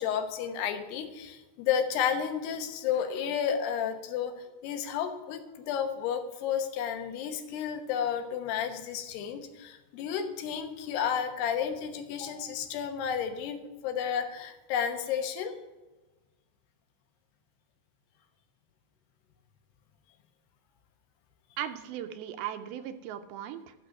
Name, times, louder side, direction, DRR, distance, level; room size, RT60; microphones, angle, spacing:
voice 1, 0.0-4.3 4.6-15.6, left 8 dB, 90° left, 6 dB, 3.2 m, -32 dB
voice 2, 21.6-23.7, right 10 dB, 80° right, 9 dB, 2.5 m, -37 dB
13.0 x 6.6 x 5.9 m, 1.2 s
omnidirectional pair, 4.6 m